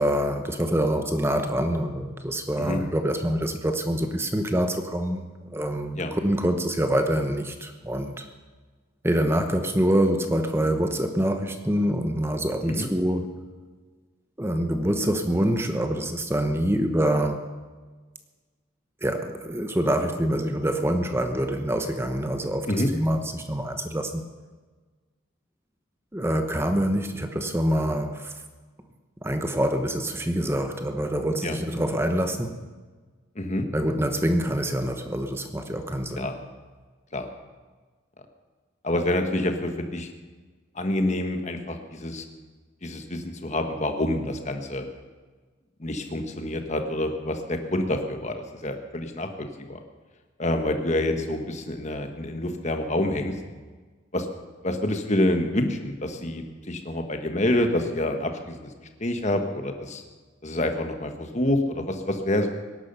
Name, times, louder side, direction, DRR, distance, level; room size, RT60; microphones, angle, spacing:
voice 1, 0.0-8.3 9.0-13.2 14.4-17.4 19.0-24.2 26.1-28.3 29.2-32.6 33.7-36.3, right 1 dB, 10° right, 7 dB, 1.0 m, -25 dB
voice 2, 33.3-33.7 36.2-36.3 37.1-37.3 38.8-40.1 40.7-42.2 42.8-44.8 45.8-49.8 50.4-53.3 54.1-54.3 54.6-58.7 59.0-60.0 60.4-62.5, left 1 dB, 35° left, 6 dB, 1.4 m, -27 dB
18.0 x 11.0 x 6.8 m, 1.4 s
head